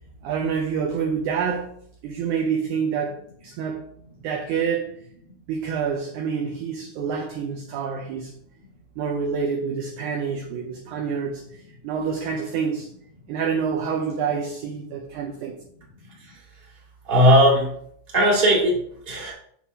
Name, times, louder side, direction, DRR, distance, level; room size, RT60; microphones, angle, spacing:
voice 1, 0.2-1.7 2.0-3.2 3.4-3.8 4.2-4.9 5.5-8.3 9.0-11.4 11.8-12.9 13.3-15.6, right 6 dB, 75° right, 1.9 m, -27 dB
voice 2, 16.0-16.7 17.0-17.7 18.1-19.3, equal, 20° right, 1.8 m, -19 dB
7.3 x 6.1 x 2.8 m
omnidirectional pair, 4.1 m